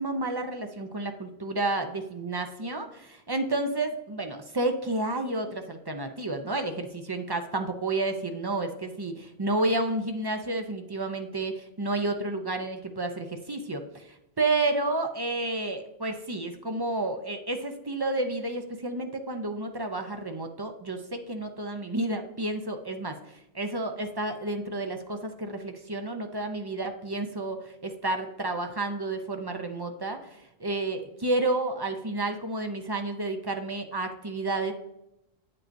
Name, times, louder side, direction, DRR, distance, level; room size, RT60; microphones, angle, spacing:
voice 1, 0.0-34.7, right 2 dB, 30° right, 5 dB, 0.5 m, -31 dB
9.0 x 7.6 x 2.6 m, 0.89 s
omnidirectional pair, 1.1 m